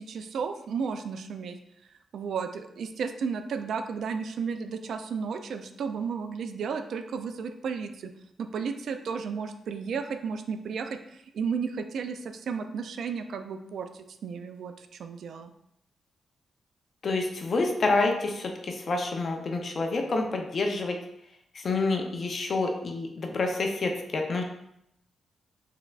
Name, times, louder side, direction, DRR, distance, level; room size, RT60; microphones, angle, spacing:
voice 1, 0.0-1.6 2.1-8.1 8.4-15.5, right 6 dB, 70° right, 8 dB, 0.3 m, -33 dB
voice 2, 17.0-21.0 21.5-24.4, left 3 dB, 45° left, 3 dB, 0.5 m, -28 dB
4.6 x 3.3 x 2.3 m, 0.78 s
cardioid pair, 110°, 0 cm